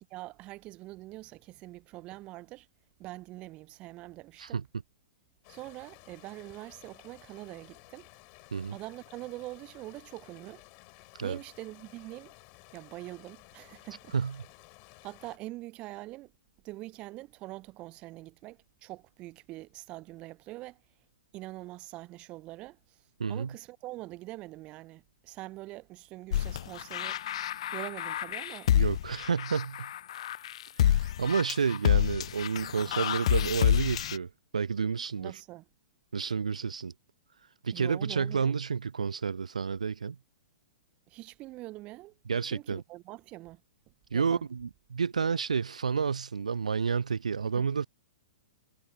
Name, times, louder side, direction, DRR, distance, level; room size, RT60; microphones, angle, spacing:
voice 1, 0.0-2.7 3.0-4.6 5.5-8.1 8.7-10.6 11.2-12.3 12.7-14.1 15.0-16.3 16.6-20.8 21.3-23.0 23.3-27.2 27.7-28.8 35.2-35.7 37.7-38.6 41.1-43.6 44.1-44.5 47.4-47.7, right 18 dB, 30° right, 0.8 m, -44 dB
sound 1, 5.4-15.4, left 34 dB, 35° left, 5.6 m, -55 dB
voice 2, 23.2-23.5 28.7-29.9 30.8-35.3 36.1-36.9 37.6-40.2 42.3-42.8 44.1-47.9, right 6 dB, 70° right, 0.5 m, -30 dB
sound 2, 26.3-34.2, left 11 dB, 55° left, 0.4 m, -28 dB
figure-of-eight pair, 110°, 4 cm